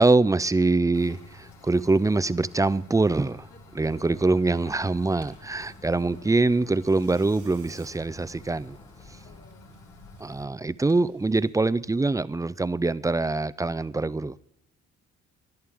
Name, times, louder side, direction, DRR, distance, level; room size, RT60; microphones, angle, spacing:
voice 1, 0.0-3.5 3.7-8.8 10.2-14.4, right 3 dB, 10° right, 0.4 m, -24 dB
sound 1, 0.9-10.5, left 2 dB, 85° left, 2.5 m, -50 dB
Tearing, 2.5-11.9, right 6 dB, 85° right, 3.8 m, -59 dB
voice 2, 3.5-4.6 5.9-6.4 9.2-9.8, left 4 dB, 60° left, 3.8 m, -53 dB
Truck, 3.8-9.4, left 3 dB, 15° left, 0.9 m, -53 dB
19.5 x 11.0 x 3.5 m
supercardioid pair, 65°, 31 cm